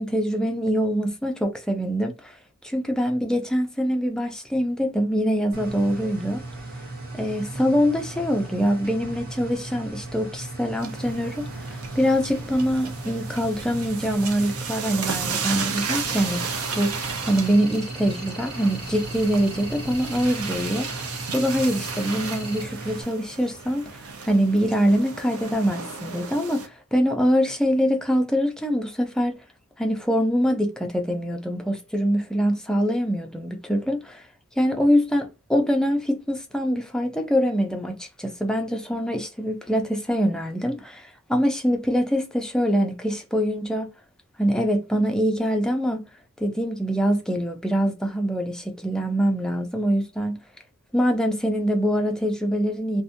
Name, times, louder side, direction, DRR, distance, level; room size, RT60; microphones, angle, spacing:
voice 1, 0.0-2.4 2.6-6.4 7.1-16.4 16.7-23.9 24.2-29.4 29.8-34.2 34.6-43.9 44.4-46.0 46.4-50.4 50.9-53.0, equal, 5° left, 0.3 m, -24 dB
sound 1, 5.5-23.0, right 2 dB, 40° right, 1.0 m, -37 dB
sound 2, 10.8-26.7, right 5 dB, 70° right, 0.6 m, -34 dB
sound 3, 15.8-22.6, right 1 dB, 85° right, 1.1 m, -41 dB
2.6 x 2.1 x 2.5 m
head